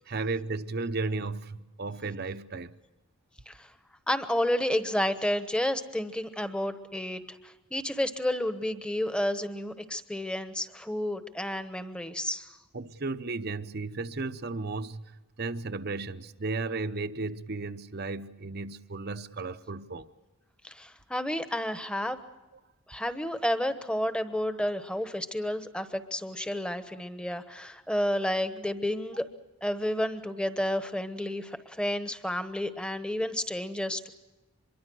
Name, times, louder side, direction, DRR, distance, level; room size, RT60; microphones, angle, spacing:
voice 1, 0.1-2.7 12.7-20.1, right 3 dB, 45° right, 0.8 m, -34 dB
voice 2, 4.1-12.5 20.6-22.2 22.9-29.3 29.6-34.1, left 1 dB, 5° left, 1.1 m, -31 dB
25.0 x 22.5 x 6.3 m
head